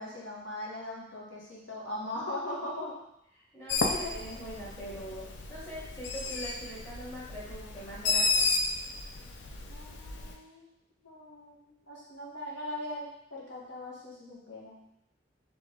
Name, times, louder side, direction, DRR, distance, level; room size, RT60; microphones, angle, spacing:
voice 1, 0.0-2.9 3.9-4.1 9.6-10.6 11.0-14.8, left 1 dB, 85° left, -5 dB, 1.4 m, -40 dB
voice 2, 3.5-8.5, equal, 15° left, -8 dB, 1.3 m, -42 dB
Bird, 3.7-10.4, left 3 dB, 65° left, 0.5 m, -32 dB
3.5 x 3.4 x 3.8 m, 0.79 s
head